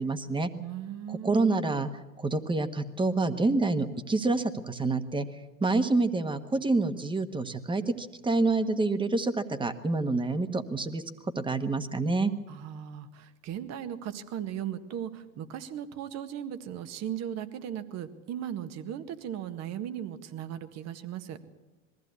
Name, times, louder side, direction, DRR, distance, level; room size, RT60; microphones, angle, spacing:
voice 1, 0.0-0.5 1.1-1.9 2.2-5.3 5.6-11.0 11.3-12.3, right 3 dB, 10° right, 9 dB, 1.6 m, -27 dB
voice 2, 0.6-1.4 12.5-21.4, right 10 dB, 40° right, 10 dB, 1.8 m, -37 dB
22.0 x 15.0 x 8.4 m, 1.1 s
figure-of-eight pair, 80°, 39 cm